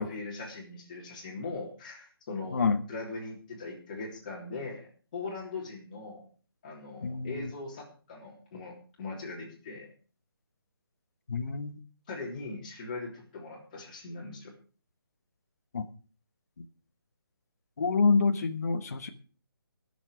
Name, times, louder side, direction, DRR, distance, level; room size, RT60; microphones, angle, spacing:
voice 1, 0.0-6.3 6.6-9.9 12.1-14.5, left 3 dB, 20° left, -2 dB, 3.3 m, -40 dB
voice 2, 2.5-2.8 7.0-7.5 11.3-11.8 15.7-15.9 16.6-16.7 17.8-19.1, left 4 dB, 40° left, 6 dB, 1.2 m, -27 dB
22.0 x 7.4 x 4.9 m, 0.38 s
hypercardioid pair, 180°, 12 cm